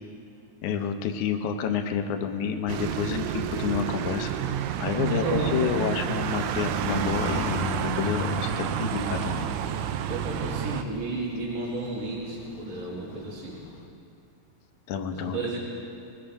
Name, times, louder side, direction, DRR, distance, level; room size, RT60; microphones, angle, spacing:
voice 1, 0.6-4.3 4.8-7.6 8.0-9.5 14.9-15.4, left 7 dB, 75° left, 6 dB, 2.1 m, -29 dB
sound 1, 2.7-10.8, right 10 dB, 80° right, 1.7 m, -29 dB
voice 2, 5.1-5.9 10.1-13.6 15.1-15.6, right 2 dB, 60° right, -6 dB, 3.7 m, -32 dB
sound 2, 6.9-13.9, left 5 dB, 90° left, 2.8 m, -38 dB
21.5 x 18.5 x 3.5 m, 2.5 s
omnidirectional pair, 3.9 m